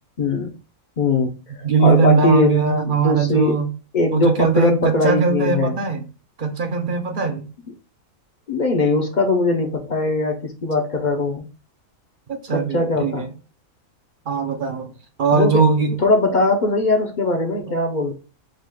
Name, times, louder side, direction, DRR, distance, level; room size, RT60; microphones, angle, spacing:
voice 1, 0.2-0.5 1.0-2.6 2.9-3.6 3.9-5.7 8.5-11.4 12.5-13.3 15.3-15.7 16.0-18.1, left 2 dB, 45° left, 0.7 m, -20 dB
voice 2, 1.6-3.7 4.1-6.0 6.4-7.5 12.3-13.3 14.3-14.9 15.2-16.0 17.7-17.8, right 5 dB, 50° right, 0.7 m, -20 dB
5.0 x 2.4 x 3.7 m
omnidirectional pair, 1.4 m